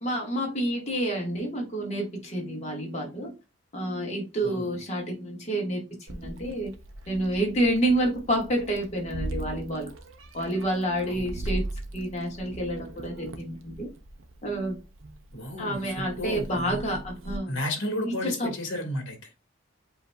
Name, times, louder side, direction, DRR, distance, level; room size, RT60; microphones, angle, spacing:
voice 1, 0.0-3.3 3.7-6.7 7.1-9.9 10.3-11.6 11.9-13.9 14.4-14.8 15.6-17.5 18.0-18.5, right 1 dB, 30° left, 1.6 m, -29 dB
Meow, 6.1-17.4, right 1 dB, 70° right, 0.8 m, -39 dB
voice 2, 15.3-17.0 17.5-19.3, left 1 dB, 60° left, 1.7 m, -33 dB
7.8 x 2.8 x 2.3 m
head